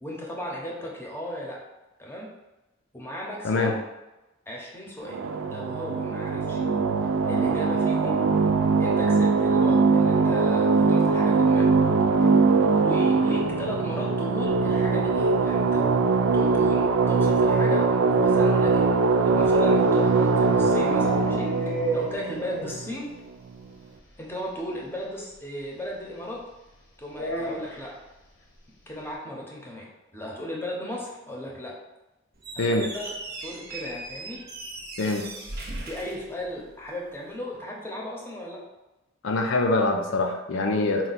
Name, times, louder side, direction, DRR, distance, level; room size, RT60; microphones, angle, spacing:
voice 1, 0.0-1.6 2.0-2.3 2.9-3.8 4.5-5.2 5.5-6.6 7.3-8.2 8.8-11.7 12.8-15.9 16.3-18.9 19.2-21.5 21.9-23.1 24.2-26.5 27.0-27.9 28.9-31.7 32.7-33.1 33.4-34.4 35.9-38.6, left 1 dB, 10° left, -3 dB, 0.8 m, -36 dB
sound 1, 5.1-23.2, right 4 dB, 85° right, 0.3 m, -22 dB
sound 2, 19.9-22.9 23.2-23.3 23.6-23.7 23.9-24.1 25.3-25.4 27.1-28.0, right 1 dB, 90° left, 0.9 m, -32 dB
Squeak, 32.3-37.0, right 2 dB, 55° right, 0.8 m, -38 dB
voice 2, 39.2-41.1, left 2 dB, 70° left, 3 dB, 0.5 m, -24 dB
4.4 x 2.3 x 4.0 m, 1.0 s
head